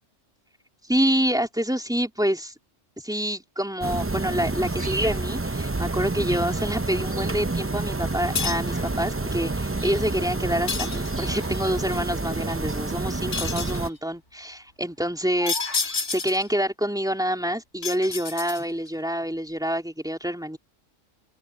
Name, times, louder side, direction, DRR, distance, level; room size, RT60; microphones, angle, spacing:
voice 1, 0.9-2.5 3.0-15.6 16.1-20.6, equal, 5° right, 3.3 m, -27 dB
sound 1, 3.8-13.9, right 2 dB, 20° right, 0.4 m, -28 dB
Bird vocalization bird call bird song, 4.8-6.3 6.9-7.4 8.1-9.0 9.3-12.8 13.1-13.2 13.3-13.7 14.1-16.0, left 1 dB, 70° left, 6.7 m, -42 dB
sound 2, 8.4-8.8 10.7-11.4 13.3-13.9 15.5-16.5 17.8-18.9, left 5 dB, 55° left, 1.6 m, -29 dB
omnidirectional pair, 1.3 m